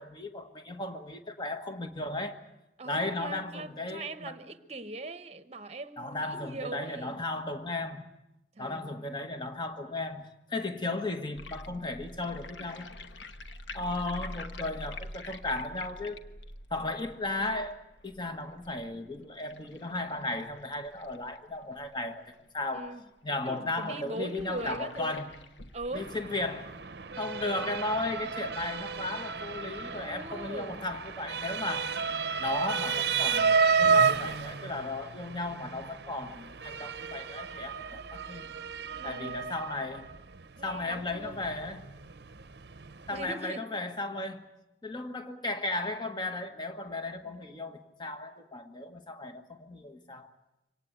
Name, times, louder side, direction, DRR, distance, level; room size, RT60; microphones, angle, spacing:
voice 1, 0.0-2.4 2.8-4.3 6.0-8.0 8.6-12.9 13.7-16.2 16.7-17.8 18.0-22.2 22.5-22.9 23.2-25.3 25.9-26.7 27.2-31.9 32.4-38.5 39.0-40.1 40.6-41.9 43.1-44.5 44.8-50.3, left 2 dB, 25° left, 1.4 m, -35 dB
voice 2, 2.8-7.2 8.5-9.5 22.7-23.0 23.4-25.3 25.7-26.1 27.6-27.8 29.8-30.8 39.0-39.4 40.6-41.4 43.1-43.7 47.2-47.3, right 2 dB, 35° right, 1.0 m, -41 dB
sound 1, 11.3-22.3 22.8-22.9 23.1-23.2 23.8-28.8, left 2 dB, 75° left, 1.2 m, -46 dB
Motor vehicle (road) / Siren, 25.9-43.3, right 5 dB, 60° right, 0.8 m, -32 dB
25.0 x 18.5 x 8.9 m
head